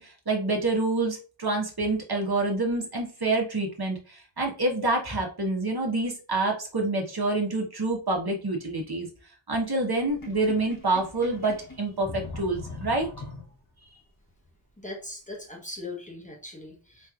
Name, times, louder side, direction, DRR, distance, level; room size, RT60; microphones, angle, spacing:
voice 1, 0.0-9.1 9.5-13.1, right 2 dB, 50° right, 0 dB, 1.2 m, -27 dB
Sink (filling or washing), 10.1-13.9, left 3 dB, 40° left, 1.1 m, -41 dB
voice 2, 14.8-17.1, left 2 dB, 15° left, -1 dB, 1.1 m, -40 dB
4.4 x 3.1 x 2.4 m, 0.37 s
wide cardioid pair, 55°, 50 cm